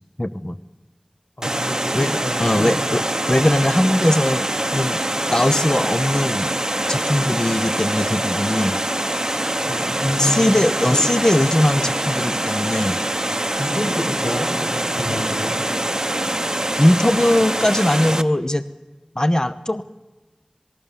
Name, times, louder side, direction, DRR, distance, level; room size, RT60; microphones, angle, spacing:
voice 1, 0.2-0.6 1.9-4.4 4.7-5.0 5.3-6.5 6.9-8.8 10.2-13.0 16.8-18.6 19.2-19.8, left 1 dB, 25° left, 12 dB, 0.8 m, -20 dB
voice 2, 1.4-2.8 9.6-10.4 10.9-11.0 13.6-15.6, equal, 85° left, 0 dB, 6.0 m, -28 dB
Water, 1.4-18.2, right 1 dB, 25° right, 1.0 m, -24 dB
26.5 x 19.5 x 7.4 m, 1.2 s
wide cardioid pair, 45°, 2 cm